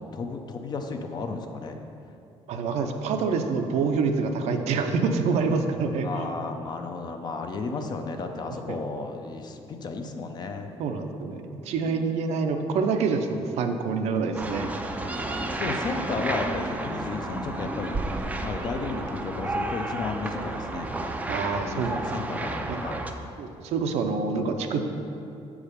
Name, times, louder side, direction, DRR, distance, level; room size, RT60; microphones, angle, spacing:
voice 1, 0.0-1.8 3.2-3.3 6.0-10.7 11.9-12.2 15.6-18.0 18.4-20.9 21.5-23.0, left 4 dB, 40° left, 5 dB, 0.5 m, -33 dB
voice 2, 2.5-6.2 8.7-8.8 10.8-11.4 11.7-14.7 21.3-22.0 22.7-22.8 23.4-24.8, right 4 dB, 75° right, 5 dB, 0.6 m, -26 dB
sound 1, 14.3-23.1, right 2 dB, 15° right, 0.4 m, -31 dB
7.5 x 4.8 x 5.0 m, 2.7 s
cardioid pair, 150°, 11 cm